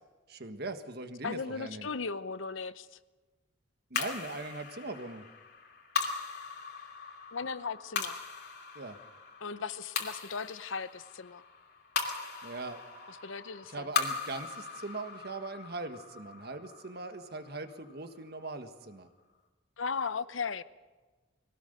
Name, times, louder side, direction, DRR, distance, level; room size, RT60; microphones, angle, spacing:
voice 1, 0.3-1.9 3.9-5.3 8.7-9.0 12.4-12.8 13.7-19.1, right 2 dB, 55° right, 8 dB, 1.6 m, -40 dB
voice 2, 1.2-2.9 7.3-8.2 9.4-11.4 13.1-13.9 19.8-20.6, left 5 dB, 80° left, 15 dB, 0.8 m, -37 dB
sound 1, 3.9-18.5, left 5 dB, 55° left, 2.8 m, -39 dB
23.0 x 17.5 x 6.8 m, 1.3 s
head